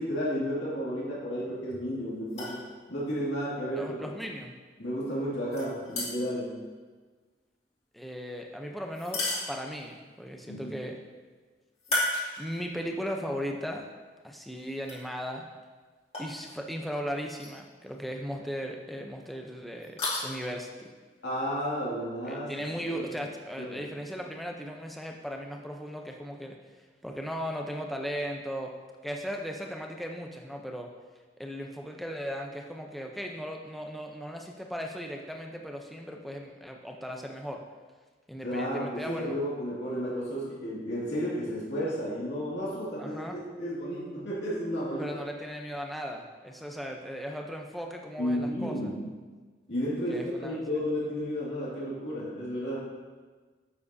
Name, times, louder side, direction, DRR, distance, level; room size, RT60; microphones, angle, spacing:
voice 1, 0.0-2.6 2.9-4.1 4.8-6.5 10.5-10.7 21.2-23.2 23.6-23.9 38.4-45.1 48.2-49.1 49.7-52.8, equal, 85° left, -7 dB, 2.2 m, -32 dB
sound 1, 2.3-2.6 5.5-6.4 8.9-10.0 11.8-12.7 13.3-13.4 14.8-15.0 16.1-16.3 17.3-17.6 17.9-18.0 19.8-20.2, left 2 dB, 35° left, 2.2 m, -33 dB
voice 2, 3.7-4.6 7.9-11.0 11.9-12.0 12.4-13.9 14.2-15.5 16.2-20.9 22.2-26.6 27.0-28.7 29.0-30.9 31.4-37.6 38.3-39.3 43.0-43.4 45.0-48.9 50.1-50.6, equal, ahead, 1 dB, 0.6 m, -37 dB
9.7 x 7.4 x 2.7 m, 1.4 s
head